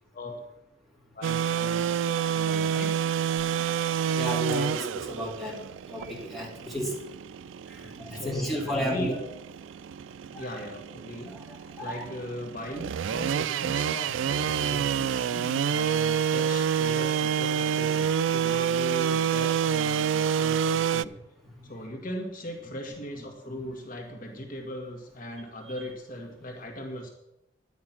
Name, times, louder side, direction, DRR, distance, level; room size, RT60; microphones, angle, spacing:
voice 1, 1.1-2.0 2.3-2.9 8.1-9.2 10.3-11.3 11.8-21.1 21.6-27.1, left 1 dB, 45° left, 1 dB, 1.9 m, -39 dB
sound 1, 1.2-21.0, right 8 dB, 75° right, 0.3 m, -28 dB
voice 2, 4.1-5.6 5.9-6.9 7.7-9.2 10.3-10.6 11.3-12.0, equal, ahead, -4 dB, 3.0 m, -33 dB
12.0 x 9.7 x 6.0 m, 0.87 s
head